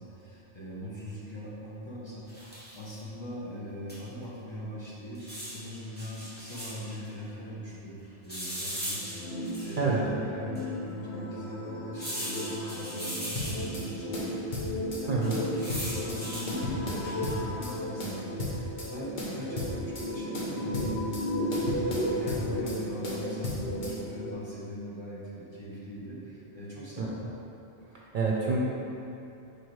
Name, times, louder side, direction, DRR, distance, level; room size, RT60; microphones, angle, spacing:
voice 1, 0.0-9.0 9.3-27.2, equal, 25° left, -8 dB, 1.1 m, -41 dB
sound 1, 2.3-2.9 3.9-4.0 4.2-4.3 5.1-7.0 8.3-9.9 10.5-10.6 11.9-13.9 15.2-16.5 17.0-17.4, equal, 10° left, 1.4 m, -38 dB
sound 2, 8.9-24.3, left 1 dB, 70° left, 1.5 m, -35 dB
sound 3, 13.3-13.9 14.1-15.0 15.3-16.2 16.5-17.7 18.0-18.9 19.2-20.1 20.3-21.3 21.5-22.8 23.0-23.9, left 1 dB, 45° left, 1.1 m, -35 dB
voice 2, 15.1-15.4 27.0-27.1 28.1-28.6, right 4 dB, 50° right, -4 dB, 0.8 m, -27 dB
4.8 x 4.8 x 4.7 m, 2.9 s
omnidirectional pair, 1.2 m